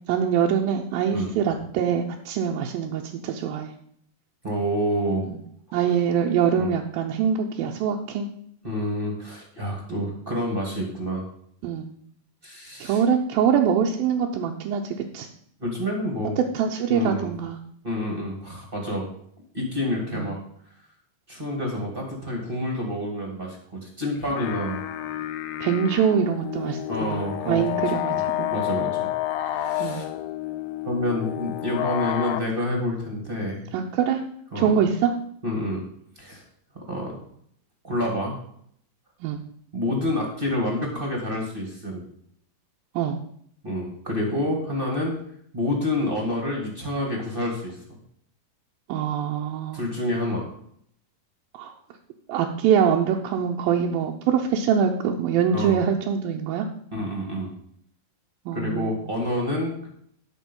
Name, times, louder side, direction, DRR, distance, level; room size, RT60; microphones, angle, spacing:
voice 1, 0.1-3.7 5.3-5.4 5.7-8.3 9.9-10.0 11.6-11.9 12.8-15.3 16.5-17.6 20.1-20.3 25.6-28.5 29.8-30.1 33.7-34.2 34.6-35.1 39.2-39.4 42.9-43.2 48.9-49.8 51.5-51.7 52.3-56.7 58.5-59.0, right 7 dB, 85° right, 0 dB, 2.6 m, -24 dB
voice 2, 4.4-5.3 6.6-6.7 8.6-11.2 12.4-13.0 15.6-16.4 16.9-17.3 17.8-19.1 19.5-20.4 21.3-24.8 26.9-27.8 28.1-28.2 28.5-29.1 29.4-30.0 30.8-33.6 34.5-34.7 35.4-35.8 36.2-36.4 36.9-37.2 37.8-38.4 39.7-42.0 43.6-45.1 45.5-48.0 49.7-50.5 55.5-55.8 56.9-57.5 58.5-59.9, left 1 dB, 20° right, -1 dB, 1.7 m, -28 dB
sound 1, 24.2-32.4, left 14 dB, 90° left, 2.4 m, -30 dB
10.5 x 6.4 x 5.4 m, 0.66 s
omnidirectional pair, 4.0 m